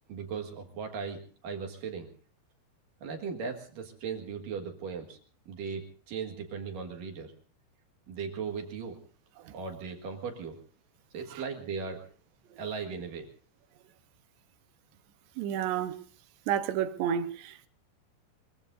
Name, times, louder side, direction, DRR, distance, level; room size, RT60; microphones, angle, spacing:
voice 1, 0.1-2.1 3.0-5.2 5.5-7.3 8.1-9.0 9.5-10.6 11.1-12.0 12.6-13.3, right 5 dB, 60° right, 3.0 m, -37 dB
voice 2, 15.4-16.0 16.5-17.7, right 9 dB, 80° right, 3.1 m, -30 dB
24.5 x 23.0 x 2.6 m
omnidirectional pair, 5.2 m